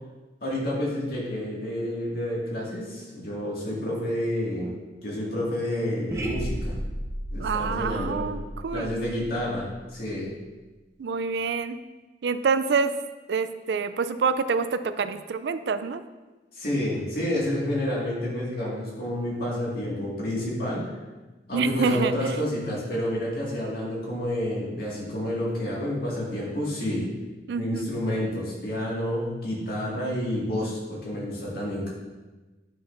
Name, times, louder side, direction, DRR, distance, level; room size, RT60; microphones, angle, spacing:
voice 1, 0.4-4.7 5.0-6.8 7.3-8.3 8.7-10.3 16.5-20.9 21.5-27.1 27.6-31.9, left 1 dB, 55° left, -5 dB, 2.0 m, -29 dB
sound 1, 6.1-10.2, right 1 dB, 15° right, 0.8 m, -34 dB
voice 2, 7.4-8.9 11.0-11.8 12.2-12.9 13.3-16.0 21.5-22.1 27.5-27.9, right 5 dB, 70° right, 12 dB, 0.4 m, -26 dB
9.1 x 6.0 x 2.6 m, 1.2 s
head